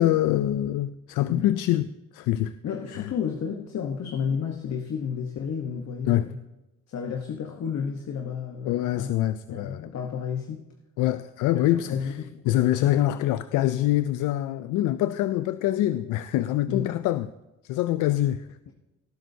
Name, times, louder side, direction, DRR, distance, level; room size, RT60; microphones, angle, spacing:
voice 1, 0.0-1.9 2.1-2.6 2.9-3.1 6.0-6.3 8.6-9.9 11.0-12.2 12.5-17.3 17.6-18.6, left 14 dB, 90° left, 13 dB, 0.5 m, -25 dB
voice 2, 2.6-6.4 6.9-9.1 9.5-10.7 11.7-12.9 16.7-17.0, left 7 dB, 60° left, 3 dB, 1.1 m, -32 dB
18.5 x 10.5 x 2.7 m, 1.0 s
cardioid pair, 90°, 30 cm